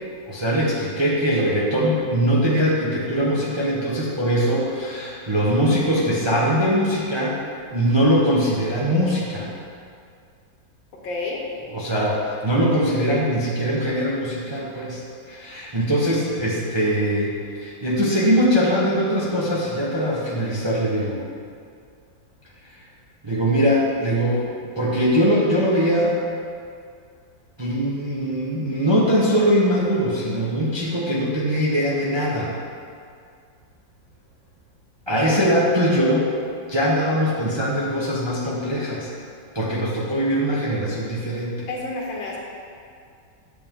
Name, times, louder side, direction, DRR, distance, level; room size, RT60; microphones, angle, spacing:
voice 1, 0.2-7.4 7.7-9.5 11.7-15.0 15.3-21.2 23.2-26.2 27.6-32.5 35.1-36.3 36.7-39.1 39.5-41.7, equal, 20° right, -6 dB, 0.8 m, -21 dB
voice 2, 11.0-11.4 41.7-42.4, left 3 dB, 85° left, -2 dB, 2.0 m, -29 dB
8.3 x 6.9 x 3.7 m, 2.3 s
omnidirectional pair, 2.0 m